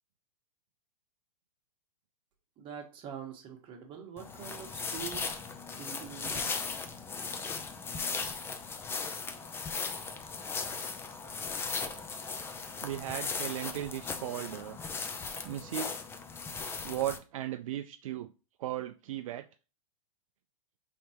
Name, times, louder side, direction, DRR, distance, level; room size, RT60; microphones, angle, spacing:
voice 1, 2.6-5.4 5.7-6.6, right 7 dB, 30° right, 1 dB, 1.3 m, -44 dB
sound 1, 4.2-17.2, left 4 dB, 15° left, 0.4 m, -37 dB
voice 2, 12.8-14.8 15.4-15.9 16.8-18.3 18.6-19.5, right 12 dB, 65° right, 7 dB, 0.4 m, -36 dB
4.2 x 3.4 x 2.9 m, 0.32 s
hypercardioid pair, 125°, 18 cm